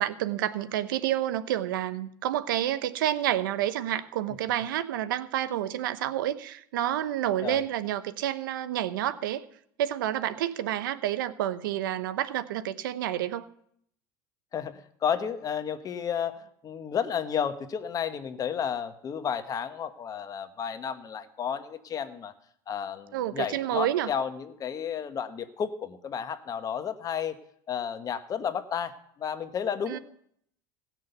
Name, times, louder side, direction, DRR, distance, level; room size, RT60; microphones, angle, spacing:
voice 1, 0.0-9.4 9.8-13.4 23.1-24.1 29.9-30.0, right 12 dB, 85° right, 14 dB, 0.8 m, -29 dB
voice 2, 14.5-22.3 22.7-27.3 27.7-30.0, left 8 dB, 35° left, 10 dB, 1.2 m, -32 dB
17.0 x 6.3 x 6.8 m, 0.68 s
supercardioid pair, 105°, 11 cm